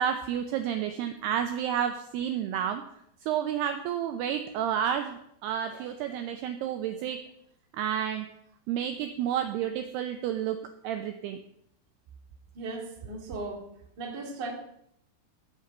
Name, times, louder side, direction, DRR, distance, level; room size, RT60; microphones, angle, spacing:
voice 1, 0.0-2.8 3.2-7.2 7.7-8.3 8.7-10.6 10.8-11.4, right 9 dB, 85° right, 7 dB, 2.3 m, -30 dB
voice 2, 12.5-13.7 14.0-14.5, right 3 dB, 40° right, 0 dB, 1.6 m, -37 dB
15.5 x 5.3 x 7.7 m, 0.74 s
omnidirectional pair, 5.6 m